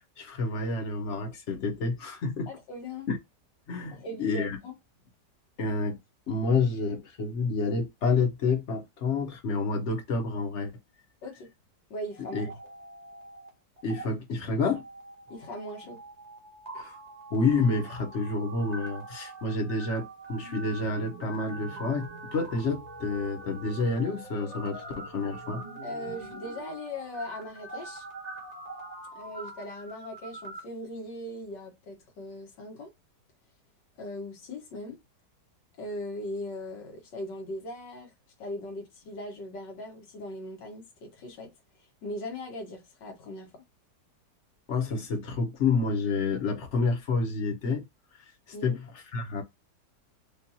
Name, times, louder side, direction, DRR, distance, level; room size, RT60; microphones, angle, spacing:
voice 1, 0.0-2.5 3.1-3.2 3.7-4.6 5.6-6.0 6.3-10.7 12.3-12.5 13.8-14.8 16.7-17.0 17.3-25.6 44.7-47.8 48.6-48.8 49.1-49.4, left 4 dB, 50° left, 1.1 m, -29 dB
voice 2, 2.5-3.1 3.9-4.8 11.2-11.5 11.9-12.6 15.3-16.0 25.8-28.1 29.1-32.9 34.0-35.0 35.8-38.1 38.4-41.5 42.0-43.6 48.5-48.8, left 1 dB, 85° left, 1.9 m, -39 dB
sound 1, 12.1-13.5 13.8-14.0 14.6-30.6, right 2 dB, 25° right, 1.2 m, -43 dB
5.2 x 2.4 x 2.8 m
omnidirectional pair, 1.9 m